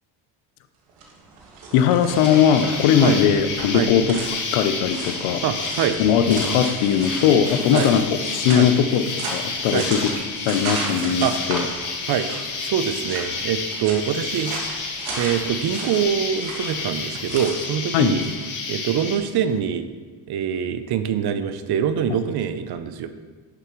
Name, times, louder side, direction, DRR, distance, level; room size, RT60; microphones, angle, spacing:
sound 1, 0.9-18.5, right 3 dB, 85° right, 1.8 m, -36 dB
voice 1, 1.7-4.2 4.5-5.4 6.0-9.0 9.3-10.0 10.5-11.6 17.9-18.2, left 8 dB, 90° left, 10 dB, 0.8 m, -19 dB
Insect, 2.1-19.2, left 4 dB, 40° left, 1.1 m, -30 dB
voice 2, 5.4-6.0 7.7-7.9 8.5-8.7 9.7-9.9 11.2-11.4 12.1-12.3 12.6-14.5 15.2-18.3 18.7-19.9 20.3-23.1, right 8 dB, 50° right, 10 dB, 0.6 m, -24 dB
11.0 x 6.7 x 3.1 m, 1.4 s
cardioid pair, 135°, 49 cm